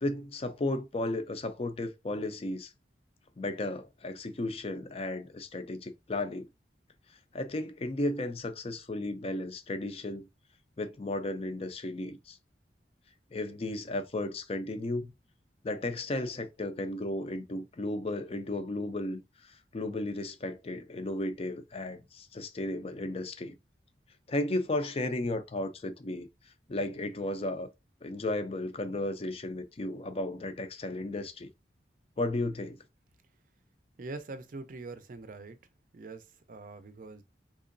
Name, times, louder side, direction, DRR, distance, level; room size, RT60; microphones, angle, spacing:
voice 1, 0.0-2.7 3.4-6.5 7.3-10.3 10.8-12.4 13.3-15.1 15.6-23.6 24.3-26.3 26.7-27.7 28.0-31.5 32.2-32.8, left 2 dB, 35° left, 0.5 m, -34 dB
voice 2, 34.0-35.6 35.9-37.2, right 3 dB, 50° right, 0.5 m, -43 dB
3.6 x 3.0 x 2.5 m
head